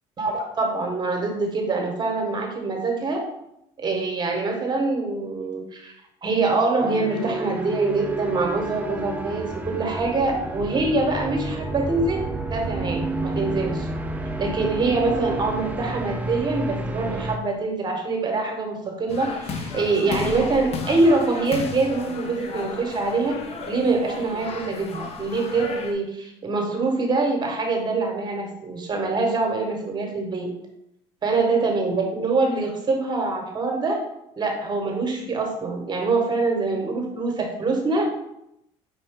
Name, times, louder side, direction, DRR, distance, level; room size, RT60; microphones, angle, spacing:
voice 1, 0.2-3.2 3.8-5.9 6.2-13.9 14.4-23.4 23.7-30.5 31.2-34.0 34.4-38.1, right 3 dB, 30° right, 2 dB, 1.2 m, -24 dB
sound 1, 6.8-17.4, right 2 dB, 10° right, 0.5 m, -30 dB
sound 2, 19.1-25.9, left 4 dB, 45° left, 0.7 m, -34 dB
5.5 x 2.6 x 3.6 m, 0.80 s
supercardioid pair, 85°, 14 cm